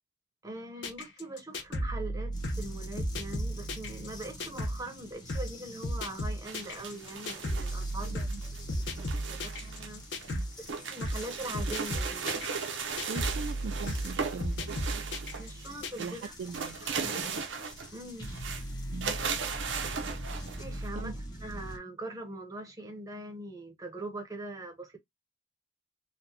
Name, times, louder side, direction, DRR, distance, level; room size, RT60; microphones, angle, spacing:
voice 1, 0.4-8.3 8.6-10.4 10.9-12.4 15.0-16.3 16.9-17.4 17.9-18.3 20.6-25.0, right 1 dB, 20° right, 0.9 m, -42 dB
sound 1, 0.8-4.8 5.3-5.5 5.8-10.5 11.0-11.3 11.5-15.9, equal, 70° left, 0.9 m, -34 dB
sound 2, 2.3-21.8, equal, 20° left, 1.0 m, -45 dB
sound 3, 6.4-9.9 10.2-15.7 15.9-17.9 18.2-18.6 19.0-20.9, right 6 dB, 90° right, 0.8 m, -37 dB
voice 2, 8.0-8.4 10.3-10.5 13.1-15.4 16.0-17.5 18.9-19.2 20.9-21.2, right 5 dB, 65° right, 0.3 m, -42 dB
3.8 x 2.3 x 2.7 m
head